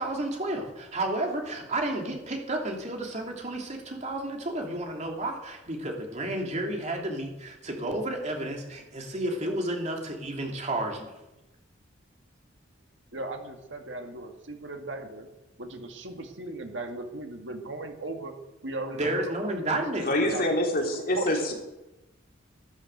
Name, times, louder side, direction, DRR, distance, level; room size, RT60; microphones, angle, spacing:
voice 1, 0.0-11.1 19.0-20.1, right 1 dB, 35° right, 1 dB, 3.1 m, -31 dB
voice 2, 13.1-15.3 15.6-18.3 18.6-19.8 20.2-20.4 21.2-21.3, right 2 dB, 65° right, 4 dB, 2.0 m, -37 dB
voice 3, 20.0-21.5, left 1 dB, 50° left, 0 dB, 3.5 m, -26 dB
13.0 x 11.5 x 8.0 m, 1.0 s
head